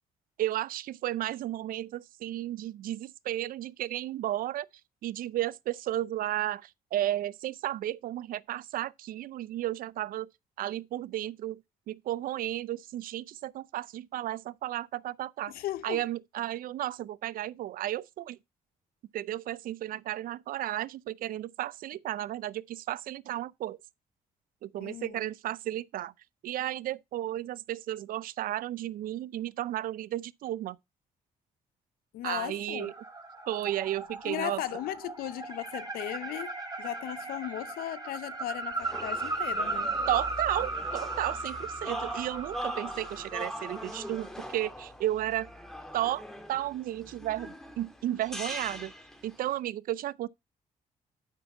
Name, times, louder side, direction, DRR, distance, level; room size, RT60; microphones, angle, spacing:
voice 1, 0.4-4.7 5.0-10.3 10.6-11.6 11.9-15.5 15.8-18.4 19.1-23.8 24.6-26.1 26.4-30.8 32.2-32.9 33.5-34.6 40.1-45.5 45.9-48.9 49.2-50.3, right 13 dB, 70° right, 0.4 m, -33 dB
voice 2, 15.5-16.0 24.8-25.2 32.1-32.9 34.3-39.9, left 14 dB, 80° left, 0.6 m, -37 dB
sound 1, 32.8-44.3, right 3 dB, 25° right, 3.3 m, -37 dB
sound 2, 38.8-49.6, equal, 5° left, 2.3 m, -41 dB
9.1 x 5.6 x 4.4 m
supercardioid pair, 70°, 15 cm